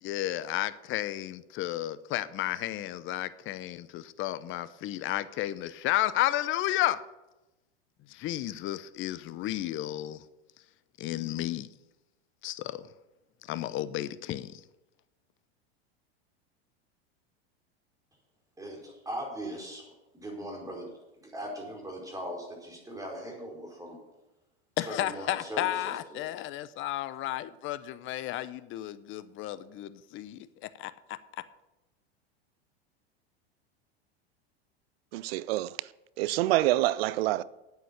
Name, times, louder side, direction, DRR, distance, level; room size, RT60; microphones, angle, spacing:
voice 1, 0.0-7.0 8.1-10.2 11.0-11.7 12.4-12.9 13.5-14.6 24.8-31.4, left 14 dB, 40° left, 0.8 m, -32 dB
voice 2, 18.6-20.9 21.2-24.0 24.8-26.3, right 1 dB, 10° right, 4.7 m, -40 dB
voice 3, 35.1-35.8 36.2-37.4, right 16 dB, 70° right, 0.6 m, -26 dB
9.1 x 8.9 x 6.9 m
hypercardioid pair, 105°, 32 cm